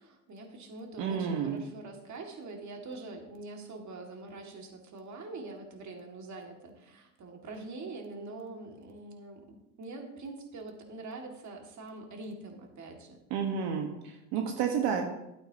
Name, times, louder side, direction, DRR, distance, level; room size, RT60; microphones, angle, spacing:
voice 1, 0.0-13.2, right 3 dB, 35° right, 2 dB, 2.3 m, -44 dB
voice 2, 1.0-1.6 13.3-15.0, right 7 dB, 65° right, 2 dB, 1.6 m, -30 dB
13.0 x 8.6 x 3.0 m, 0.90 s
supercardioid pair, 95°, 48 cm